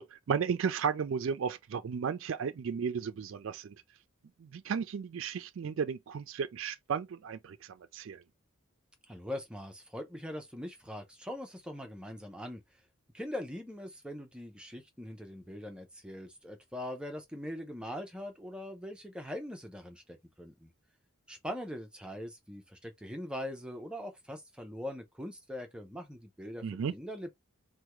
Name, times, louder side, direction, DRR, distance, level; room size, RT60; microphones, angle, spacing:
voice 1, 0.0-3.8 4.4-8.2 26.6-26.9, right 6 dB, 65° right, 0.4 m, -34 dB
voice 2, 9.1-12.6 13.1-20.7 21.3-26.6 26.9-27.3, left 1 dB, 5° right, 0.5 m, -42 dB
3.4 x 2.2 x 3.0 m
head